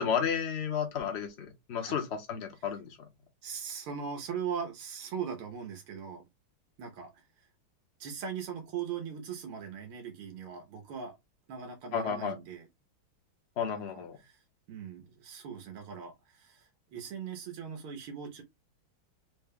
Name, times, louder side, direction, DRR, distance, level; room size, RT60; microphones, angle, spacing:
voice 1, 0.0-3.0 11.9-12.3 13.6-14.2, left 7 dB, 50° left, 0.7 m, -32 dB
voice 2, 3.4-6.2 6.8-7.2 8.0-11.2 11.5-12.7 13.7-14.4 14.7-18.4, right 7 dB, 90° right, 1.8 m, -40 dB
4.3 x 2.2 x 3.5 m
omnidirectional pair, 2.3 m